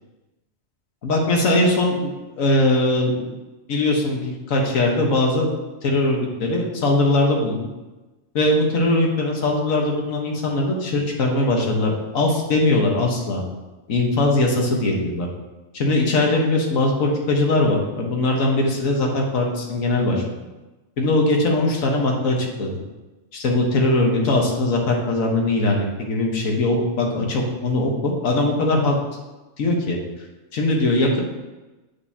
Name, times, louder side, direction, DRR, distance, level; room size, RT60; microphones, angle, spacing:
voice 1, 1.0-2.1 2.4-3.3 3.7-5.5 5.8-7.7 8.3-13.5 13.9-15.3 15.7-20.2 21.0-22.8 23.3-28.9 29.6-30.0 30.5-31.2, left 2 dB, 80° left, 0 dB, 1.6 m, -20 dB
8.3 x 6.6 x 2.8 m, 1.1 s
omnidirectional pair, 1.4 m